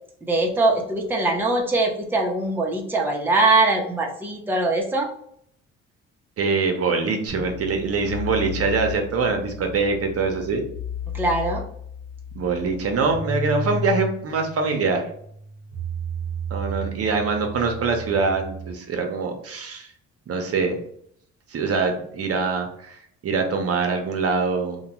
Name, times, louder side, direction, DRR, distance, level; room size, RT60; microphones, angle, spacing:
voice 1, 0.2-5.1 11.1-11.6, right 2 dB, 5° right, 0 dB, 0.6 m, -22 dB
voice 2, 6.4-10.6 12.4-15.0 16.5-19.9 20.3-20.8 21.5-24.8, right 4 dB, 50° right, 4 dB, 0.7 m, -24 dB
sound 1, 7.3-18.7, left 1 dB, 55° left, 1.0 m, -33 dB
2.9 x 2.2 x 2.9 m, 0.67 s
cardioid pair, 90°, 30 cm